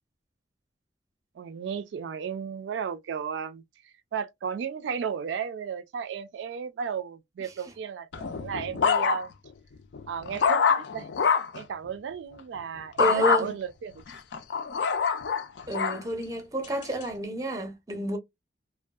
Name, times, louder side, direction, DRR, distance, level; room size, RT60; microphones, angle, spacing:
voice 1, 1.4-9.3 10.1-11.1 11.5-13.9, right 7 dB, 80° right, 0.3 m, -34 dB
sound 1, 8.1-9.5 9.9-11.6 13.0-13.4 14.1-16.0 16.6-17.0, left 6 dB, 75° left, 0.4 m, -25 dB
voice 2, 13.0-13.6 15.7-18.2, right 1 dB, 20° right, 0.5 m, -29 dB
2.6 x 2.3 x 2.3 m
head